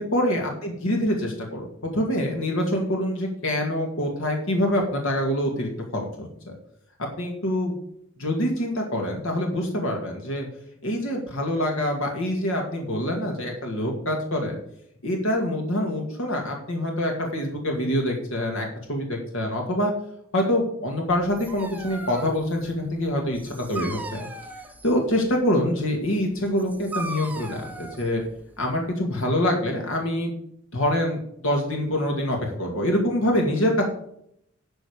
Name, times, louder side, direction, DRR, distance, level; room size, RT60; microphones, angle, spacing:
voice 1, 0.0-6.6 7.2-7.7 8.2-10.5 10.8-14.6 15.0-19.9 20.3-24.3 24.8-28.2 28.6-30.3 30.7-33.8, left 1 dB, 65° left, 1 dB, 2.1 m, -25 dB
Dog, 21.1-28.9, right 2 dB, 10° right, 0.9 m, -39 dB
12.0 x 5.2 x 6.5 m, 0.71 s
head